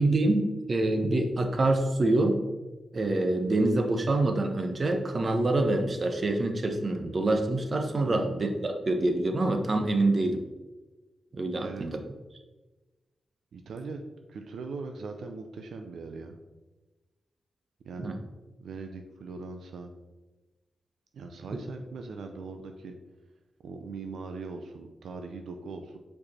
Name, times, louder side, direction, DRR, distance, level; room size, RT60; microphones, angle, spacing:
voice 1, 0.0-2.4 2.9-10.4 11.3-12.0 18.0-18.2, right 2 dB, 45° right, 6 dB, 0.8 m, -26 dB
voice 2, 8.0-8.5 11.6-11.9 13.5-16.4 17.8-18.1 18.6-19.9 21.1-22.9 23.6-26.0, right 4 dB, 85° right, 5 dB, 0.5 m, -40 dB
5.1 x 4.7 x 4.2 m, 1.1 s
cardioid pair, 80°, 0 cm